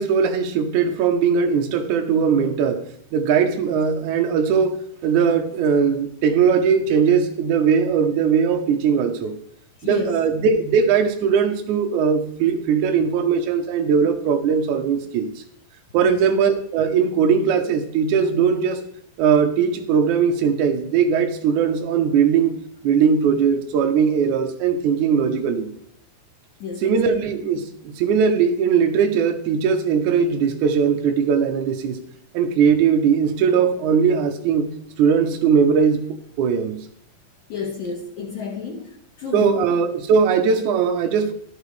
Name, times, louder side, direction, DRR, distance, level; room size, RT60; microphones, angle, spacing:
voice 1, 0.0-2.8 3.1-4.8 5.0-9.4 9.8-15.3 15.9-18.8 19.2-22.5 22.8-25.7 26.8-32.0 32.3-34.7 35.0-36.0 36.4-36.8 39.3-41.3, right 6 dB, 80° right, 4 dB, 1.8 m, -19 dB
voice 2, 9.8-10.2 16.0-16.2 26.6-27.2 37.5-39.6, left 5 dB, 65° left, -3 dB, 3.0 m, -31 dB
12.0 x 11.0 x 3.3 m, 0.67 s
omnidirectional pair, 4.6 m